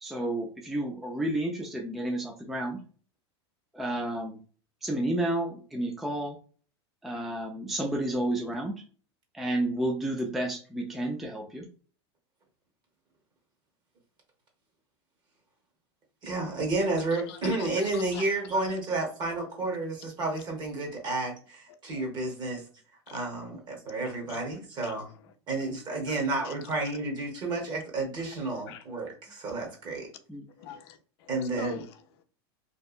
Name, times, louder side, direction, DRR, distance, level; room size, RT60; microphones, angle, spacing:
voice 1, 0.0-2.8 3.7-4.4 4.8-6.4 7.0-8.7 9.3-11.7 30.3-30.4, right 1 dB, ahead, 0.3 m, -31 dB
voice 2, 16.2-22.6 23.1-25.1 25.5-30.1 31.3-31.8, right 2 dB, 30° right, 0.9 m, -31 dB
voice 3, 17.1-18.2 21.9-22.0 23.1-23.2 24.3-24.4 24.8-25.3 26.1-26.2 26.4-26.5 28.7-29.0 30.6-32.2, left 8 dB, 70° left, 0.5 m, -44 dB
2.7 x 2.1 x 2.4 m
supercardioid pair, 130°, 14 cm